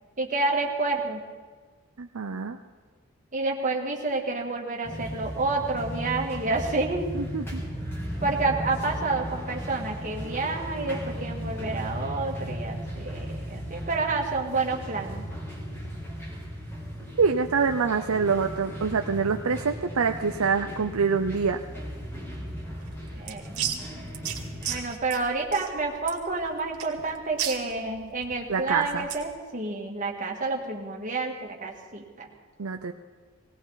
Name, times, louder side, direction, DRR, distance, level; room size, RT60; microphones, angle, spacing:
voice 1, 0.2-1.2 3.3-7.1 8.2-15.3 23.2-23.5 24.7-32.3, right 3 dB, 35° right, 0 dB, 2.0 m, -29 dB
voice 2, 2.0-2.6 7.1-7.6 17.2-21.6 28.5-29.1 32.6-32.9, right 5 dB, 70° right, 6 dB, 0.6 m, -25 dB
sound 1, 4.8-24.8, equal, 10° left, 2.7 m, -36 dB
sound 2, 22.8-29.3, right 9 dB, 90° right, 2.1 m, -35 dB
19.5 x 17.5 x 4.1 m, 1.5 s
head